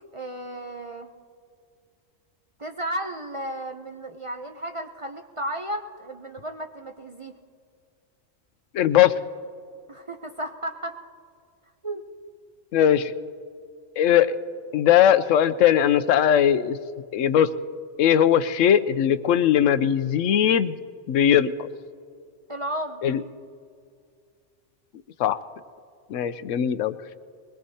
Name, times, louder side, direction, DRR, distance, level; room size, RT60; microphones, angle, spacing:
voice 1, 0.1-1.1 2.6-7.3 9.9-11.0 11.8-12.0 22.5-23.0, right 1 dB, 35° right, 5 dB, 0.5 m, -33 dB
voice 2, 8.7-9.1 12.7-13.1 14.0-14.4 14.7-16.8 17.1-17.5 18.0-20.7 21.1-21.7 23.0-23.2 25.2-25.4 26.1-26.9, left 10 dB, 90° left, 13 dB, 1.0 m, -19 dB
22.0 x 20.5 x 2.8 m, 2.2 s
omnidirectional pair, 1.3 m